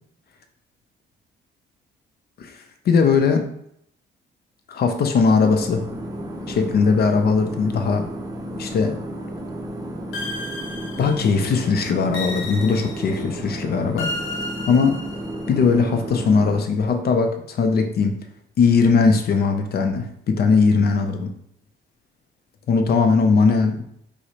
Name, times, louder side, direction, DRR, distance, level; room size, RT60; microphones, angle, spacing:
voice 1, 2.4-3.5 4.7-5.8 6.5-8.1 8.6-9.0 11.0-14.1 14.7-15.0 15.5-18.1 18.6-21.3 22.7-23.8, left 5 dB, 50° left, 7 dB, 0.5 m, -19 dB
sound 1, 5.4-16.6, equal, 15° right, 0.6 m, -33 dB
sound 2, 10.1-11.5 12.1-13.3 14.0-15.5, left 2 dB, 80° left, 0.8 m, -33 dB
4.6 x 2.1 x 2.8 m, 0.72 s
cardioid pair, 90°, 20 cm